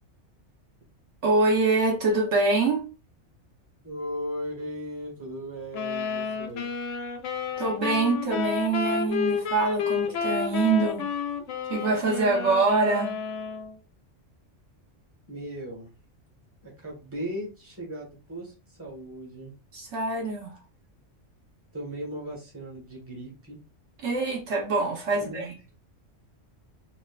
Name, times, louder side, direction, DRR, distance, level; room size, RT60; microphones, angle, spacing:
voice 1, 1.2-2.8 7.6-11.1 11.7-13.1 19.7-20.6 24.0-25.5, right 3 dB, 65° right, 1.1 m, -24 dB
voice 2, 3.8-6.7 15.3-15.9 16.6-19.5 21.7-23.6 25.1-25.5, equal, 10° right, 1.2 m, -37 dB
sound 1, 5.7-13.7, left 6 dB, 90° left, 1.0 m, -30 dB
3.7 x 2.6 x 2.4 m
omnidirectional pair, 1.3 m